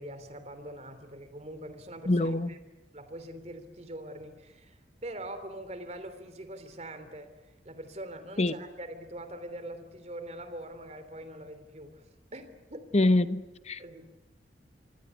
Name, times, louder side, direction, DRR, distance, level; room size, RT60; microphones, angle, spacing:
voice 1, 0.0-2.6 2.9-12.0 12.3-12.9 13.8-14.0, right 1 dB, 40° right, 3.3 m, -43 dB
voice 2, 2.1-2.5 8.4-8.5 12.9-13.8, left 2 dB, 40° left, 1.1 m, -25 dB
27.0 x 24.5 x 8.3 m
head